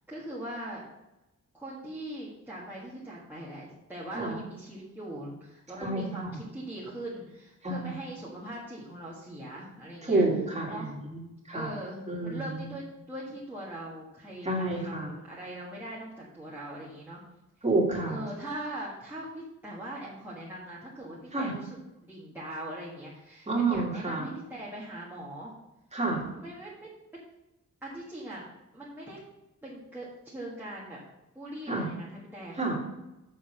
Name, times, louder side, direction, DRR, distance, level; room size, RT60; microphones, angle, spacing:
voice 1, 0.1-0.8 1.5-10.2 10.7-10.9 11.5-17.2 18.1-21.8 22.0-25.5 26.3-26.9 27.8-28.5 28.7-29.2 29.6-31.0 31.3-32.6, right 1 dB, 5° right, -7 dB, 1.6 m, -41 dB
voice 2, 5.7-6.4 7.6-7.9 10.0-11.2 11.5-11.7 12.1-12.6 14.4-15.1 17.6-18.2 21.3-21.5 23.5-24.3 25.9-26.2 31.7-31.9 32.6-32.8, right 2 dB, 20° right, -2 dB, 2.2 m, -29 dB
6.6 x 6.4 x 6.5 m, 0.96 s
wide cardioid pair, 175°, 30 cm